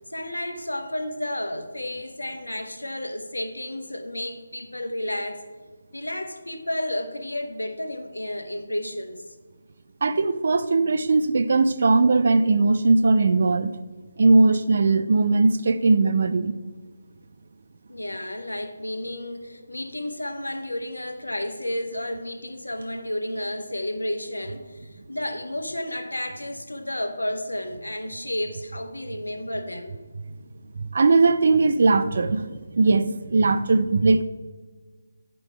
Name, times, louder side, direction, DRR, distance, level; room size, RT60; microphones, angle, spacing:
voice 1, 0.1-5.4 5.9-9.3 17.9-29.9, left 1 dB, 75° left, 6 dB, 1.1 m, -32 dB
voice 2, 10.0-13.8 14.2-16.5 30.8-34.2, right 3 dB, 50° right, 11 dB, 0.5 m, -19 dB
9.7 x 5.4 x 4.4 m, 1.4 s
figure-of-eight pair, 150°, 0 cm